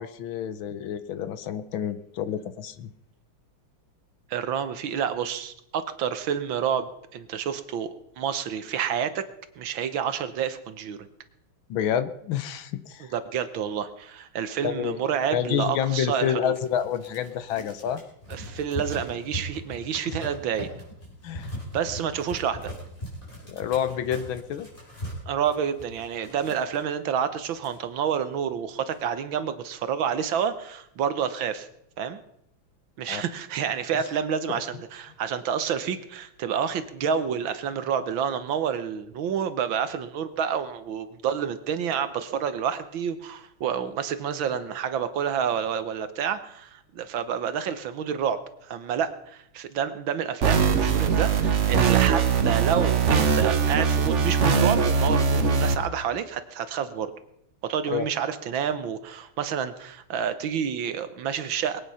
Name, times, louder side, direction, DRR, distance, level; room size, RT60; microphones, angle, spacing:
voice 1, 0.0-2.9 11.7-13.1 14.6-15.0 15.3-18.0 21.2-21.5 23.5-24.7 33.1-33.2 33.9-34.0 34.5-34.6 57.9-58.1, left 9 dB, 75° left, 13 dB, 1.6 m, -28 dB
voice 2, 4.3-9.3 9.6-11.1 13.0-16.5 18.3-20.7 21.7-22.7 25.3-31.7 32.0-32.2 33.0-57.1 57.6-61.8, right 8 dB, 70° right, 11 dB, 1.7 m, -29 dB
sound 1, 16.5-26.8 27.3-27.4 27.5-28.2 28.7-29.0, equal, 20° left, 5.0 m, -39 dB
sound 2, 50.4-55.8, right 6 dB, 45° right, 1.1 m, -21 dB
22.0 x 9.2 x 5.6 m, 0.78 s
omnidirectional pair, 2.3 m